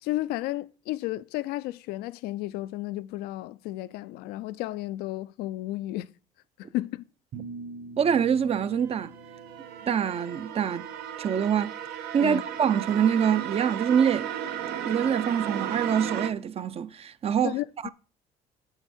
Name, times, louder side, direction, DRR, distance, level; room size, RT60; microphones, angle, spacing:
voice 1, 0.0-6.1 6.6-7.0 12.2-12.4 17.4-17.9, left 16 dB, 80° left, 0.4 m, -33 dB
sound 1, 7.3-10.5, right 4 dB, 55° right, 1.5 m, -43 dB
voice 2, 8.0-9.1 9.9-10.9 11.2-11.7 12.1-14.3 14.9-17.9, right 8 dB, 40° right, 0.5 m, -25 dB
sound 2, 8.6-16.3, right 10 dB, 75° right, 0.9 m, -35 dB
7.9 x 7.1 x 4.2 m
cardioid pair, 95°, 16 cm